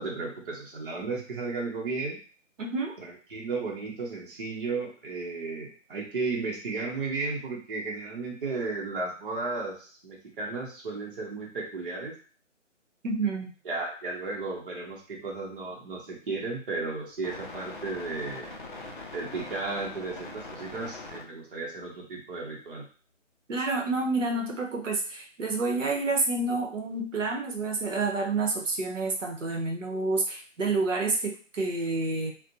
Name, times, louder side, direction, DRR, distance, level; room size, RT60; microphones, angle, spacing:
voice 1, 0.0-2.2 3.0-12.1 13.6-18.5 19.1-22.9, right 3 dB, 45° right, -2 dB, 0.7 m, -34 dB
voice 2, 2.6-2.9 13.0-13.5 23.5-32.3, right 3 dB, 75° right, 1 dB, 0.8 m, -29 dB
sound 1, 16.9-21.2, left 2 dB, 40° left, 0.4 m, -42 dB
2.4 x 2.1 x 2.7 m, 0.39 s
figure-of-eight pair, 150°, 38 cm